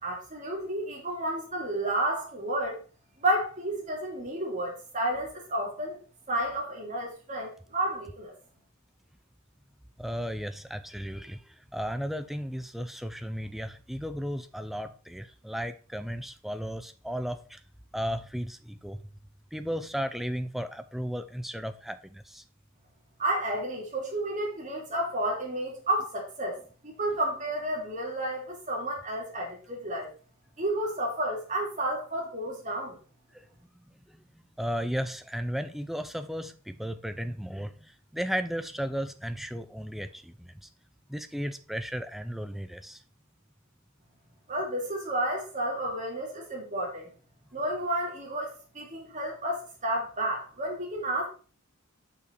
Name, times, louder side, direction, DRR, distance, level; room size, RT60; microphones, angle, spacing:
voice 1, 0.0-2.8 3.2-6.0 6.3-8.3 23.2-30.1 30.6-33.0 44.5-47.1 47.5-51.3, right 1 dB, 35° right, 2.9 m, -31 dB
voice 2, 10.0-17.6 17.9-19.0 19.5-22.4 33.3-33.5 34.1-40.7 41.1-43.0, equal, ahead, 0.5 m, -35 dB
6.2 x 5.8 x 4.6 m
head